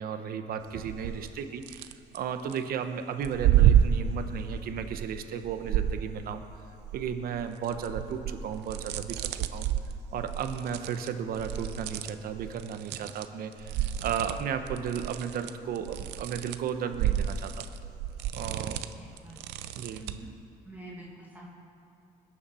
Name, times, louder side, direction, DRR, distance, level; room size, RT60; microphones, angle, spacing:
voice 1, 0.0-1.9 2.1-6.5 6.9-9.7 10.1-17.6 18.3-18.8 19.7-20.1, right 7 dB, 65° right, 8 dB, 1.0 m, -34 dB
sound 1, 0.7-1.3 1.6-2.6 3.2-6.5 6.8-13.3 13.5-20.3, right 10 dB, 85° right, 0.6 m, -30 dB
voice 2, 18.7-19.4 20.0-20.3 20.6-21.5, right 1 dB, 10° right, -5 dB, 2.2 m, -47 dB
20.5 x 7.2 x 5.6 m, 2.7 s
cardioid pair, 110°, 17 cm